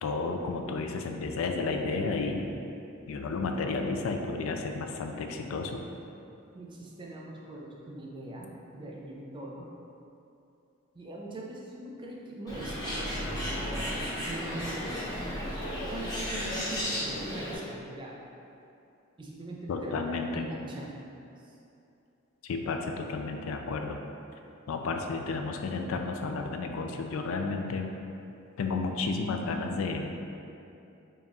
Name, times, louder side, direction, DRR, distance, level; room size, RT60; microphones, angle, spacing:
voice 1, 0.0-2.5 3.1-5.8 19.7-20.5 22.4-24.0 24.7-27.9 28.6-30.1, left 3 dB, 70° left, 4 dB, 0.3 m, -32 dB
voice 2, 6.5-9.7 10.9-15.6 15.9-18.2 19.2-21.0 21.4-21.6, right 1 dB, 25° right, -3 dB, 0.4 m, -42 dB
Bird, 12.5-17.6, equal, 20° left, 0.9 m, -34 dB
4.0 x 2.3 x 3.6 m, 2.7 s
head